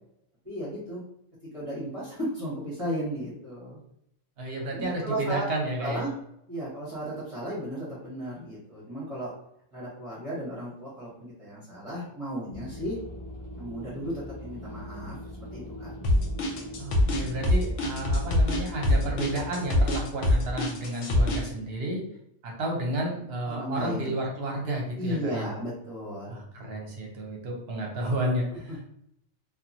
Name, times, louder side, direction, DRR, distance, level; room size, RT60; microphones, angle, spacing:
voice 1, 0.4-1.0 1.5-3.8 4.7-5.4 5.8-6.1 6.5-9.3 9.7-13.0 13.6-15.2 15.5-15.9 23.4-24.1 25.0-26.4 28.5-28.8, equal, 30° right, -9 dB, 0.9 m, -35 dB
voice 2, 4.4-6.0 16.8-22.0 22.4-25.4 26.3-28.8, right 1 dB, 55° right, 0 dB, 0.9 m, -31 dB
sound 1, 12.5-19.7, equal, 25° left, 1.0 m, -41 dB
sound 2, 16.0-21.5, left 1 dB, 75° left, 0.9 m, -23 dB
2.9 x 2.3 x 2.5 m, 0.75 s
omnidirectional pair, 1.3 m